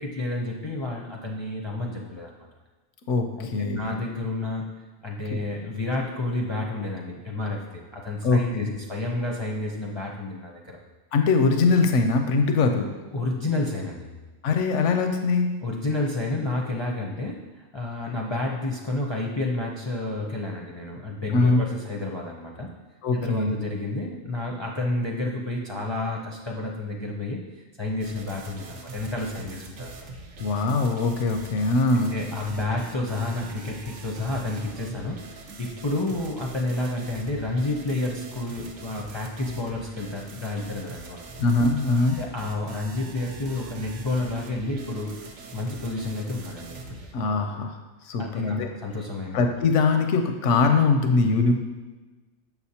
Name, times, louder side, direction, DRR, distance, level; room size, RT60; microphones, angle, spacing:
voice 1, 0.0-2.3 3.4-4.7 5.0-10.8 13.1-14.1 15.6-22.7 23.1-30.1 31.9-41.2 42.2-45.2 45.5-47.3 48.2-49.4, left 2 dB, 30° left, -2 dB, 0.5 m, -30 dB
voice 2, 3.1-3.8 8.2-8.7 11.1-12.9 14.4-15.5 21.3-21.6 23.0-23.5 30.4-32.1 41.4-42.2 47.1-47.8 48.1-48.7 49.3-51.5, left 4 dB, 85° left, 5 dB, 1.0 m, -22 dB
sound 1, 28.0-47.1, right 3 dB, 85° right, 1.1 m, -42 dB
7.1 x 6.3 x 2.8 m, 1.2 s
omnidirectional pair, 1.2 m